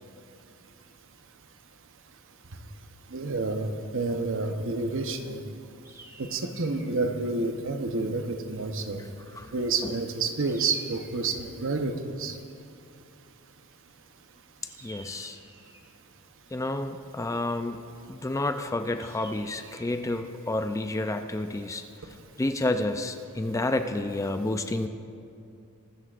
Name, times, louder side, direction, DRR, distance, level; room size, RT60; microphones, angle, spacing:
voice 1, 3.1-5.4 6.2-9.0 9.5-12.4, right 3 dB, 60° right, 6 dB, 0.9 m, -29 dB
sound 1, 5.8-7.0 10.4-11.5 14.7-15.9 19.0-20.2, right 1 dB, 15° right, 1.1 m, -51 dB
voice 2, 14.8-15.4 16.5-17.8 18.1-21.8 22.4-24.9, left 2 dB, 15° left, 7 dB, 0.4 m, -30 dB
22.5 x 12.5 x 2.5 m, 2.5 s
head